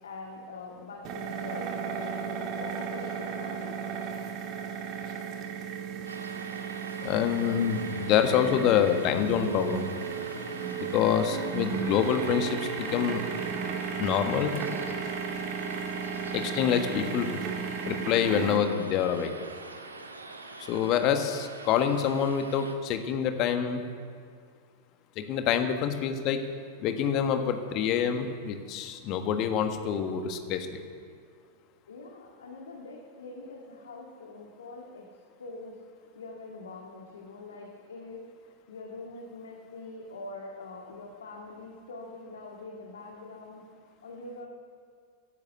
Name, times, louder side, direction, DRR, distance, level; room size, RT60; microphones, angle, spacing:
voice 1, 0.0-3.8 31.9-35.1 35.4-44.5, left 3 dB, 65° left, 0 dB, 1.9 m, -44 dB
sound 1, 1.0-18.6, right 6 dB, 40° right, 2.2 m, -35 dB
sound 2, 6.1-22.8, right 3 dB, 75° right, 1.5 m, -44 dB
voice 2, 7.0-9.8 10.8-13.2 14.0-14.6 16.3-17.4 17.8-19.3 20.6-23.8 25.1-26.4 26.8-30.8, left 8 dB, 40° left, 7 dB, 1.5 m, -26 dB
16.0 x 10.5 x 8.2 m, 2.1 s
figure-of-eight pair, 90°, 0 cm